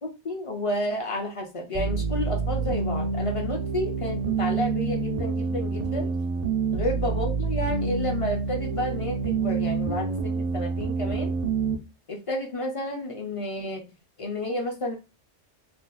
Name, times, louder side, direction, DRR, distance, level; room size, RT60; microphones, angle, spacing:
voice 1, 0.0-6.1 6.7-11.3 12.1-13.9 14.2-15.0, left 1 dB, 40° left, 0.5 m, -31 dB
sound 1, 1.7-11.7, right 5 dB, 80° right, 0.3 m, -27 dB
2.6 x 2.4 x 3.7 m
omnidirectional pair, 1.2 m